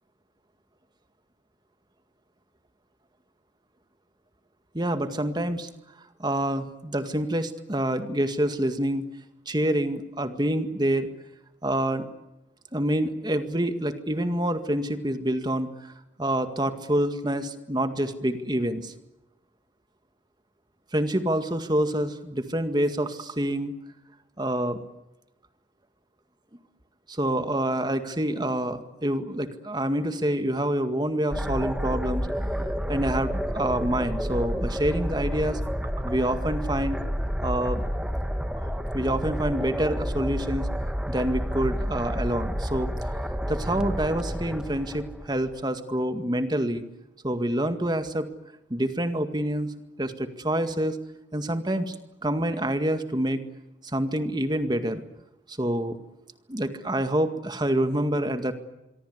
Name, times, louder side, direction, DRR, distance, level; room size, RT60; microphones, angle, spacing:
voice 1, 4.7-5.7 6.2-9.0 9.5-11.1 11.6-12.1 12.7-15.9 16.2-18.9 20.9-23.7 24.4-24.8 27.1-32.3 32.9-35.6 36.0-37.0 37.4-37.8 38.5-38.7 38.9-40.7 41.1-42.9 43.3-46.8 47.2-48.3 48.7-49.7 50.0-51.0 51.3-52.0 52.2-53.4 53.9-55.0 55.5-56.0 56.5-58.5, right 1 dB, 25° right, 9 dB, 2.0 m, -27 dB
sound 1, 31.3-45.6, equal, 5° right, 1.6 m, -30 dB
26.0 x 23.5 x 8.1 m, 0.94 s
head